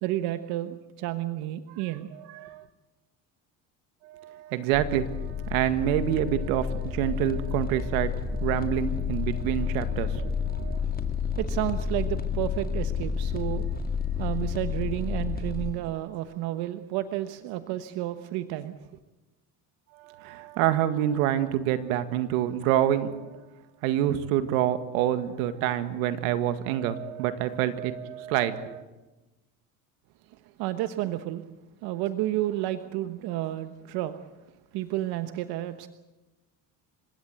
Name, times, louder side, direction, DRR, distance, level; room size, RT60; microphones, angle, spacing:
voice 1, 0.0-2.6 11.4-13.8 14.2-18.7 30.3-31.5 31.8-34.2 34.7-35.9, right 14 dB, 70° right, 10 dB, 1.3 m, -31 dB
voice 2, 4.0-10.8 20.0-23.4 23.8-28.8, right 11 dB, 90° right, 10 dB, 1.9 m, -27 dB
sound 1, 4.7-15.7, left 6 dB, 20° left, 2.5 m, -30 dB
30.0 x 17.0 x 8.1 m, 1.1 s
supercardioid pair, 100°, 40 cm